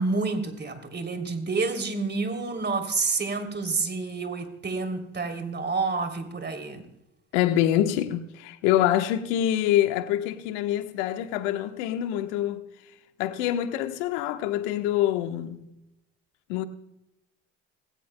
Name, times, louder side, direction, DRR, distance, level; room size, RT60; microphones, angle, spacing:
voice 1, 0.0-6.8, right 4 dB, 30° right, 3.2 m, -29 dB
voice 2, 7.3-12.7 13.2-15.6 16.5-16.6, left 12 dB, 75° left, 1.2 m, -25 dB
20.0 x 17.5 x 2.2 m
hypercardioid pair, 70°, 35 cm